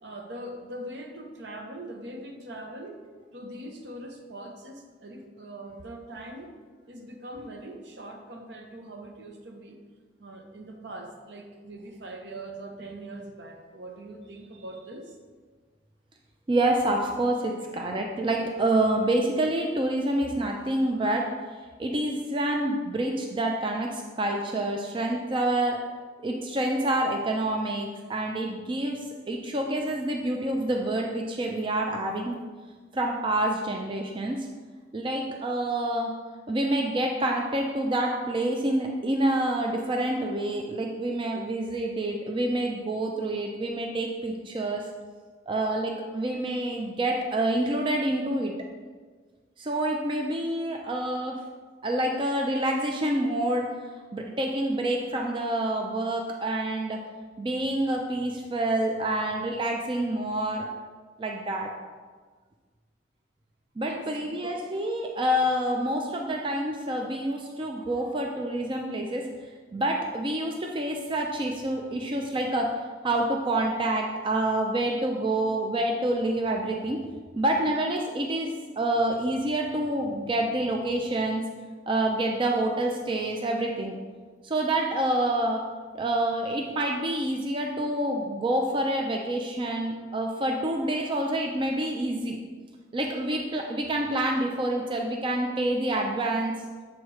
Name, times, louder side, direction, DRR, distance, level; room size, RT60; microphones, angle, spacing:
voice 1, 0.0-3.0 3.3-6.5 6.9-9.8 10.2-15.2 63.8-64.5 66.1-66.3, right 1 dB, 65° right, 3 dB, 0.8 m, -42 dB
voice 2, 16.5-21.3 21.8-25.8 26.2-32.4 32.9-34.5 34.9-36.1 36.5-44.8 45.5-48.5 49.6-51.4 51.8-53.7 54.1-57.0 57.4-60.7 61.2-61.7 63.8-69.2 69.7-72.7 73.0-77.0 77.4-81.4 81.9-84.0 84.4-85.6 85.9-92.4 92.9-96.5, right 1 dB, 25° right, 1 dB, 0.4 m, -27 dB
7.2 x 3.1 x 4.7 m, 1.5 s
head